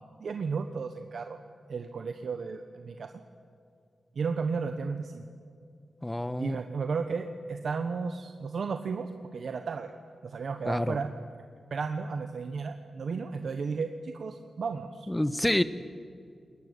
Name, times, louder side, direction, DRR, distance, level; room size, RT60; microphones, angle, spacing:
voice 1, 0.0-1.4 1.7-3.1 4.1-5.2 6.4-9.9 10.2-11.1 11.7-15.1, right 5 dB, 75° right, 6 dB, 1.3 m, -34 dB
voice 2, 6.0-6.6 10.7-11.0 15.1-15.6, left 1 dB, 10° left, 12 dB, 1.2 m, -27 dB
27.5 x 21.5 x 8.4 m, 2.4 s
wide cardioid pair, 80°, 0 cm